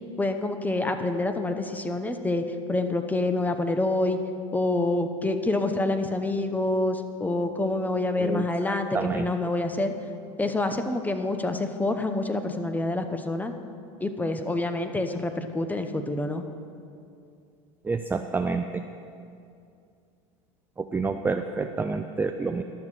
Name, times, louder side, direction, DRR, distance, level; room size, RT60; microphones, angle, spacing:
voice 1, 0.2-2.4 2.7-4.2 4.5-8.9 9.1-9.9 10.4-13.5 14.0-16.4, left 2 dB, 10° left, 7 dB, 0.8 m, -27 dB
voice 2, 8.2-9.3 17.8-18.8 20.8-22.6, right 4 dB, 10° right, 6 dB, 0.4 m, -28 dB
11.5 x 7.2 x 6.1 m, 2.5 s
supercardioid pair, 100°, 16 cm